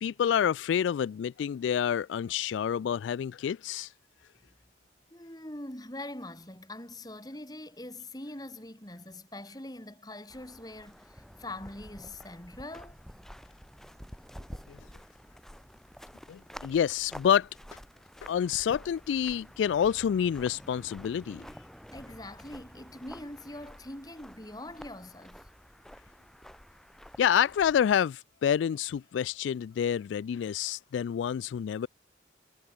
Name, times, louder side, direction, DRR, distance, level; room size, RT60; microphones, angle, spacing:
voice 1, 0.0-3.9 14.7-14.8 16.3-17.5 18.2-21.5 27.2-31.9, left 8 dB, 85° left, 0.3 m, -28 dB
voice 2, 5.1-13.0 21.9-25.5, left 1 dB, 20° left, 3.7 m, -43 dB
sound 1, 10.3-27.9, equal, ahead, 2.5 m, -49 dB
head